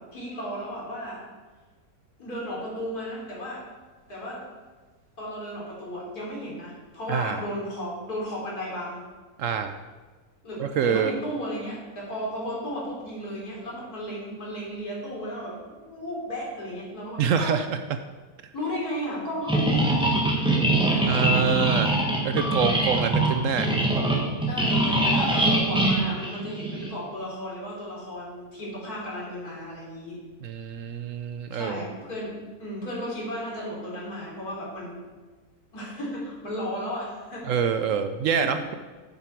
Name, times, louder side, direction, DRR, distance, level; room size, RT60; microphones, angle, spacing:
voice 1, 0.1-1.2 2.2-3.6 4.1-4.4 5.2-9.0 10.4-17.5 18.5-21.2 22.3-22.8 24.5-30.2 31.5-32.3 32.6-35.0 35.7-37.6 38.4-38.5, equal, 75° left, -5 dB, 3.8 m, -34 dB
voice 2, 7.1-7.4 9.4-9.8 10.6-11.1 17.2-18.0 21.0-22.0 22.2-23.7 30.4-31.8 37.4-38.7, right 7 dB, 70° right, 9 dB, 0.9 m, -26 dB
sound 1, 19.5-26.9, right 1 dB, 5° right, 1.2 m, -23 dB
9.6 x 8.0 x 4.6 m, 1.4 s
omnidirectional pair, 1.6 m